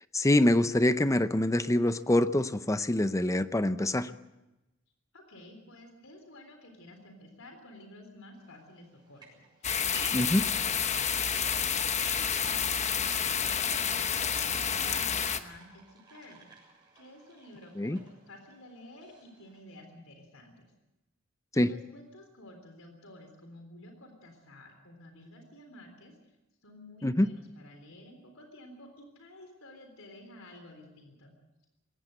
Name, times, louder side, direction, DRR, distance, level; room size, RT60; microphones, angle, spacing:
voice 1, 0.1-4.1 10.1-10.4 17.8-18.0 21.6-21.7 27.0-27.3, left 1 dB, 15° left, 13 dB, 0.6 m, -25 dB
voice 2, 5.1-11.4 12.1-16.5 16.9-20.7 21.5-26.1 26.6-31.3, left 1 dB, 90° left, 5 dB, 3.7 m, -52 dB
sound 1, 8.3-19.6, right 2 dB, 20° right, 7.2 m, -54 dB
sound 2, 9.6-15.4, left 7 dB, 35° left, 1.1 m, -29 dB
21.0 x 17.0 x 7.9 m, 0.99 s
head